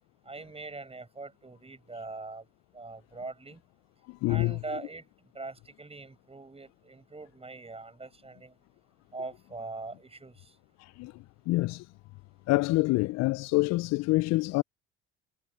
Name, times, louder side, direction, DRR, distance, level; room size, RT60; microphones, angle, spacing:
voice 1, 0.3-2.4 2.7-3.6 4.3-5.0 5.3-8.5 9.1-10.5, right 3 dB, 20° right, 7.0 m, -42 dB
voice 2, 4.1-4.6 10.8-11.1 11.5-11.9 12.5-14.6, left 21 dB, 65° left, 0.4 m, -26 dB
hypercardioid pair, 70°, 29 cm